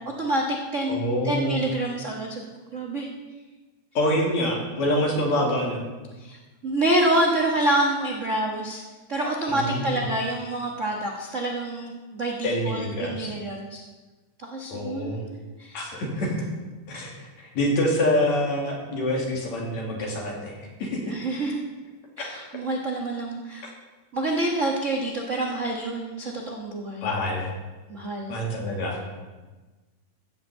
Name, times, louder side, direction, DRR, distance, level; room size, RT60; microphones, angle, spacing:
voice 1, 0.2-1.0 1.2-2.4 2.7-3.1 6.2-8.8 9.1-13.8 14.4-15.2 15.6-15.8 21.1-21.6 22.2-23.7 24.1-27.1 27.9-28.3, right 1 dB, 60° right, 0 dB, 0.7 m, -27 dB
voice 2, 0.9-1.6 4.0-5.8 9.5-10.0 12.4-13.3 14.7-15.2 15.7-16.4 16.9-21.0 22.2-22.3 27.0-27.5 28.3-29.0, left 1 dB, 65° left, -1 dB, 3.7 m, -26 dB
14.5 x 6.2 x 8.0 m, 1.2 s
omnidirectional pair, 3.5 m